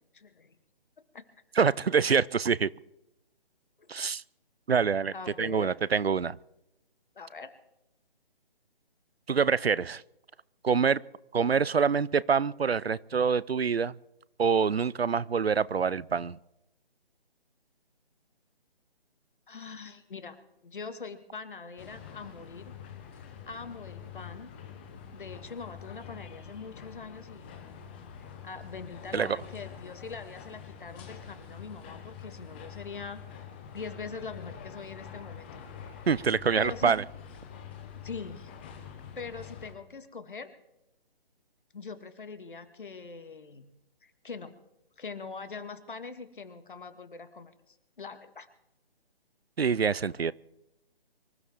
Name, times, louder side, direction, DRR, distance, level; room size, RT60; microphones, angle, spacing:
voice 1, 0.1-0.6 1.1-1.2 5.1-5.7 7.2-7.5 19.5-22.7 23.1-24.5 25.1-27.5 28.4-33.2 33.7-36.3 36.5-37.0 38.0-38.7 39.2-40.5 41.7-43.7 44.0-44.5 45.0-48.5, left 4 dB, 55° left, 11 dB, 1.8 m, -43 dB
voice 2, 1.6-2.7 3.9-4.2 4.7-6.4 9.3-10.0 10.6-11.0 11.3-14.0 14.4-16.4 29.1-29.4 36.1-37.0 49.6-50.3, right 6 dB, 80° right, 21 dB, 0.6 m, -26 dB
sound 1, 21.8-39.7, left 7 dB, 10° left, 0.7 m, -46 dB
25.0 x 14.0 x 3.6 m, 0.89 s
figure-of-eight pair, 145°, 30 cm